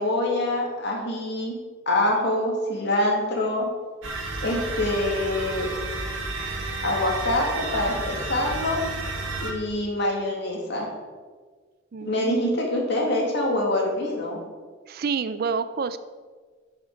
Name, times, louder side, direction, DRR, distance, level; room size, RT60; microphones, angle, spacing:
voice 1, 0.0-1.6 1.9-3.7 4.4-5.7 6.8-8.8 9.4-10.9 12.0-14.4, left 1 dB, 55° left, 0 dB, 2.0 m, -25 dB
sound 1, 4.0-9.5, right 2 dB, 75° right, 1.9 m, -31 dB
voice 2, 11.9-12.4 14.9-16.0, right 5 dB, 45° right, 12 dB, 0.4 m, -28 dB
11.5 x 5.9 x 4.6 m, 1.5 s
head